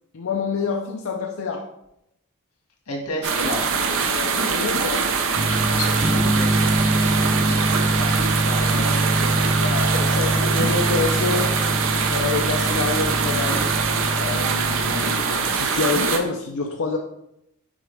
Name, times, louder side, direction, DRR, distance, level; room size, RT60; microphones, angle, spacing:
voice 1, 0.1-1.7 4.1-5.1 9.6-13.7 14.1-17.0, left 4 dB, 60° left, 2 dB, 0.5 m, -27 dB
voice 2, 2.9-3.7 5.5-9.1 9.4-9.6, left 1 dB, 85° left, -1 dB, 1.8 m, -33 dB
sound 1, 3.2-16.2, right 5 dB, 60° right, 0.7 m, -23 dB
sound 2, 5.3-15.2, right 2 dB, 15° right, 0.3 m, -24 dB
6.2 x 4.9 x 3.4 m, 0.81 s
head